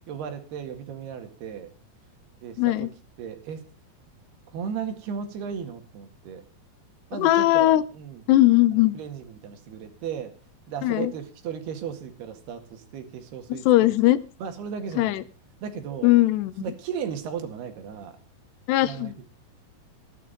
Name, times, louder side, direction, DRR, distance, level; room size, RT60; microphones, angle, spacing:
voice 1, 0.1-1.7 2.4-2.9 3.2-3.6 4.5-6.5 7.1-8.2 8.8-10.3 10.7-13.7 14.4-15.2 15.6-16.1 16.6-18.2 18.8-19.2, right 7 dB, 75° right, 7 dB, 3.9 m, -35 dB
voice 2, 2.6-2.9 7.2-7.8 8.3-9.0 10.8-11.1 13.5-14.2 15.0-15.2 16.0-16.7 18.7-19.1, left 16 dB, 90° left, 16 dB, 3.0 m, -19 dB
16.0 x 11.5 x 5.2 m, 0.37 s
omnidirectional pair, 4.7 m